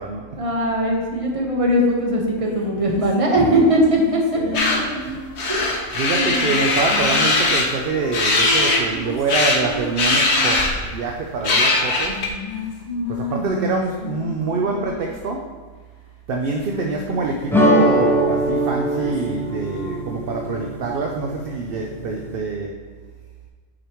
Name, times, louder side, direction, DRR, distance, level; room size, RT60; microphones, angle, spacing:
voice 1, 0.3-4.4 4.7-4.8 5.5-6.6, equal, 30° right, -1 dB, 1.1 m, -20 dB
sound 1, 2.4-5.7 6.9-10.7 12.0-15.1 16.4-17.5 17.8-20.7, left 2 dB, 25° left, 1.1 m, -32 dB
voice 2, 4.3-4.9 5.9-12.2 13.1-15.5 16.3-22.8, right 4 dB, 55° right, 1 dB, 0.7 m, -25 dB
sound 2, 4.5-4.8 5.4-7.7 8.1-8.8 9.3-9.6 10.0-10.9 11.4-12.3, left 2 dB, 60° left, 1.2 m, -19 dB
sound 3, 17.5-22.4, equal, 5° left, 0.5 m, -22 dB
8.8 x 5.0 x 3.0 m, 1.5 s
omnidirectional pair, 1.3 m